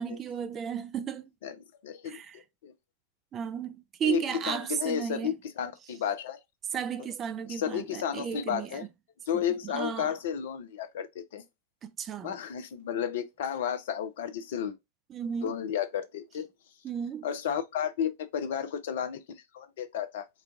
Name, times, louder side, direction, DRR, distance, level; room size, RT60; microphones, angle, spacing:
voice 1, 0.0-1.3 2.1-2.4 3.3-5.3 6.7-8.9 9.3-10.1 11.8-12.4 15.1-15.5 16.8-17.3, right 8 dB, 25° right, 0.4 m, -34 dB
voice 2, 1.8-2.7 4.0-6.4 7.0-7.1 7.5-8.9 9.3-11.4 12.2-14.8 15.4-16.5 17.2-19.2 19.5-20.3, left 8 dB, 55° left, 0.6 m, -32 dB
4.3 x 2.2 x 2.5 m
figure-of-eight pair, 90°, 0 cm